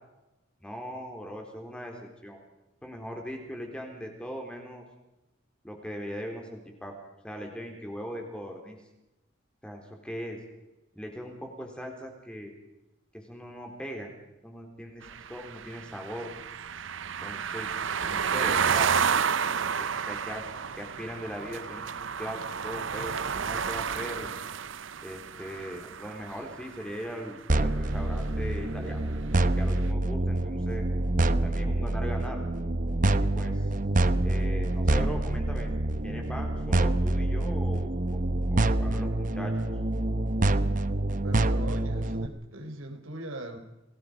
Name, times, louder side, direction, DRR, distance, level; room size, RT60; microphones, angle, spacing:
voice 1, 0.6-2.4 2.8-4.8 5.6-6.9 7.2-8.8 9.6-10.4 10.9-12.5 13.1-14.1 14.4-15.0 15.3-16.3 17.0-17.7 18.0-18.9 19.6-20.4 20.8-21.8 22.2-24.3 25.0-29.1 29.6-30.9 31.4-32.4 33.2-33.6 34.2-35.7 36.0-37.9 38.5-39.5, equal, 5° left, 2 dB, 4.0 m, -39 dB
sound 1, 15.0-27.1, right 6 dB, 65° right, 0.8 m, -31 dB
sound 2, 27.5-42.3, right 1 dB, 40° right, 0.9 m, -26 dB
voice 2, 41.2-43.6, right 1 dB, 85° right, 4 dB, 4.1 m, -40 dB
28.5 x 19.5 x 5.2 m, 0.95 s
head